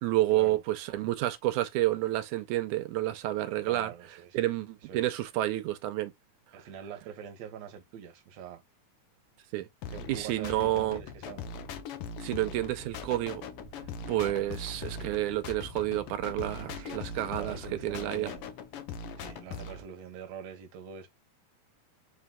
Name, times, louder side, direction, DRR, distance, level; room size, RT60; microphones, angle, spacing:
voice 1, 0.0-3.9 4.3-6.1 9.5-9.7 10.1-11.0 12.2-13.4 14.1-17.6 17.8-18.3, right 15 dB, 85° right, 2.0 m, -29 dB
voice 2, 3.6-4.4 4.8-5.2 6.5-8.6 9.9-11.5 16.7-18.5 19.2-21.1, right 8 dB, 70° right, 2.0 m, -44 dB
sound 1, 9.8-19.8, left 5 dB, 85° left, 1.2 m, -41 dB
sound 2, 12.5-18.5, right 4 dB, 30° right, 1.2 m, -49 dB
5.2 x 3.6 x 2.3 m
omnidirectional pair, 3.5 m